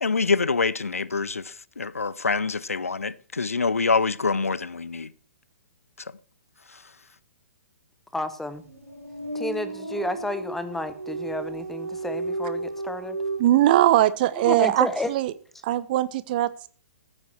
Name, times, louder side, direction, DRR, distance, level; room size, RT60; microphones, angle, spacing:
voice 1, 0.0-5.1, left 4 dB, 75° left, 0.6 m, -25 dB
voice 2, 8.1-8.6 9.3-13.2 14.3-15.1, left 2 dB, 5° left, 1.0 m, -31 dB
sound 1, 8.6-13.4, right 3 dB, 90° right, 5.1 m, -33 dB
voice 3, 13.4-15.3 15.6-16.7, right 14 dB, 40° right, 0.8 m, -21 dB
15.0 x 9.7 x 4.5 m
figure-of-eight pair, 120°, 8 cm